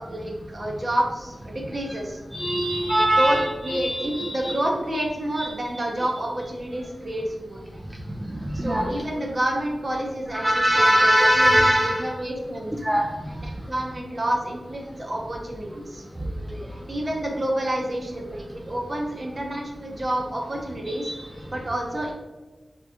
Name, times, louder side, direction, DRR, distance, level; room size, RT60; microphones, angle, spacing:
voice 1, 0.0-2.2 3.2-3.4 3.6-7.8 8.5-12.7 13.4-16.0 16.7-21.1 21.5-22.1, right 1 dB, 40° right, 0 dB, 0.8 m, -29 dB
voice 2, 2.3-4.6 5.3-5.5 8.3-8.9 10.3-12.1 12.8-13.0 21.0-21.1, equal, 15° right, -2 dB, 0.5 m, -21 dB
3.8 x 3.0 x 3.5 m, 1.2 s
wide cardioid pair, 90°, 0 cm